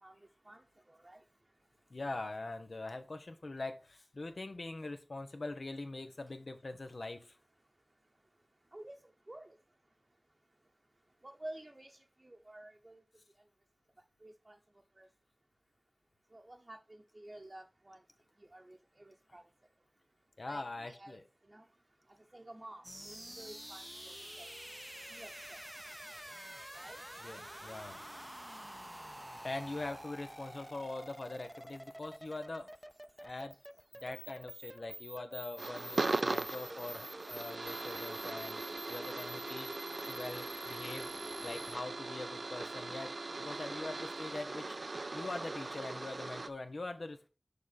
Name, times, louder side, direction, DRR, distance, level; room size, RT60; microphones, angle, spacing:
voice 1, 0.0-1.2 8.7-9.6 11.2-13.0 14.2-14.6 14.9-15.1 16.3-18.0 18.4-19.5 20.5-21.7 22.1-24.5 25.1-25.6 26.7-27.0 28.5-28.6, right 1 dB, 45° right, 2 dB, 0.8 m, -52 dB
voice 2, 1.9-7.4 20.4-21.2 27.2-28.0 28.5-28.6 29.4-32.7 33.2-33.5 34.0-38.6 38.9-39.7 40.1-41.1 41.4-43.1 43.4-44.8 45.1-47.3, left 2 dB, 85° left, 8 dB, 0.9 m, -43 dB
sound 1, 22.8-41.8, equal, 15° right, 0.5 m, -48 dB
sound 2, 35.6-46.5, right 3 dB, 80° right, 0.4 m, -39 dB
6.8 x 5.0 x 4.1 m, 0.32 s
wide cardioid pair, 50°, 0 cm